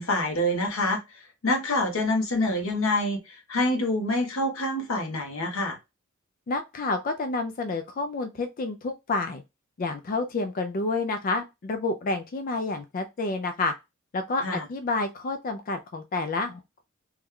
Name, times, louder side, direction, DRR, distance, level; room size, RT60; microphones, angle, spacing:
voice 1, 0.0-5.8 14.4-14.7, left 1 dB, 85° left, 1.0 m, -26 dB
voice 2, 6.5-9.4 9.8-13.7 14.1-16.6, left 3 dB, 40° left, 0.3 m, -29 dB
3.0 x 2.2 x 3.5 m
head